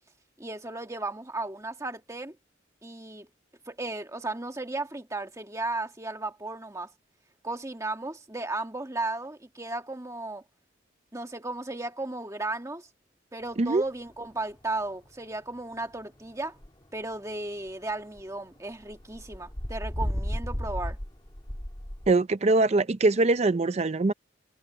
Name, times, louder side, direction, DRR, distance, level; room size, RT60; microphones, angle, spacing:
voice 1, 0.4-2.3 2.8-3.3 3.7-6.9 7.4-10.4 11.1-12.9 13.3-16.5 16.9-21.0, right 2 dB, 15° right, 1.7 m, -35 dB
sound 1, 14.1-17.1 17.5-18.2 18.7-22.1, equal, 25° left, 1.8 m, -34 dB
voice 2, 22.1-24.1, right 2 dB, 35° right, 0.5 m, -22 dB
head